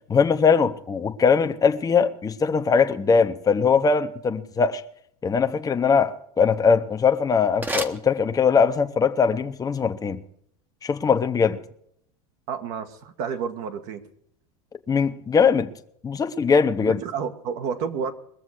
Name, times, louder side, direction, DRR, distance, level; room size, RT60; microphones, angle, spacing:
voice 1, 0.1-4.8 5.2-10.2 10.8-11.6 14.9-15.7 16.0-17.0, left 5 dB, 20° left, 0.9 m, -21 dB
sound 1, 6.8-8.8, right 1 dB, 10° right, 1.0 m, -34 dB
voice 2, 12.5-14.0 16.8-18.1, right 6 dB, 60° right, 1.5 m, -30 dB
21.0 x 7.2 x 6.4 m
hypercardioid pair, 95°, 19 cm